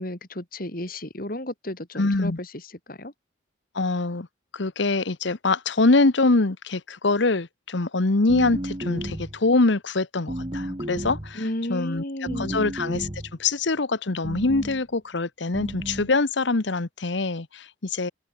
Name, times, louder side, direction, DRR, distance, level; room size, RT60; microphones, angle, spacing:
voice 1, 0.0-2.5 2.9-3.1 11.4-12.7, left 1 dB, 45° left, 2.9 m, -33 dB
voice 2, 1.9-2.4 3.7-4.3 4.5-18.1, left 3 dB, 70° left, 1.1 m, -24 dB
sound 1, 8.3-9.4 10.3-11.4 12.3-13.4 14.2-14.8 15.5-16.1, right 1 dB, 25° right, 1.4 m, -33 dB
head